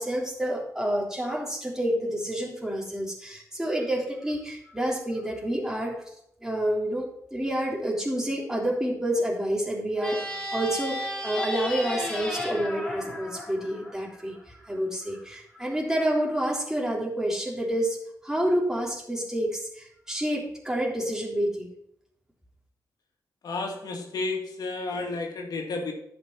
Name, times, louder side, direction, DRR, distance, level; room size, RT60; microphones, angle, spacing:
voice 1, 0.0-6.0 6.4-10.2 10.5-18.0 18.2-21.7, right 1 dB, 10° right, -2 dB, 3.6 m, -28 dB
sound 1, 10.0-14.4, left 1 dB, 10° left, 3.6 m, -33 dB
voice 2, 23.4-25.9, left 3 dB, 75° left, 2 dB, 2.2 m, -32 dB
11.0 x 6.3 x 6.0 m, 0.74 s
cardioid pair, 55°, 7 cm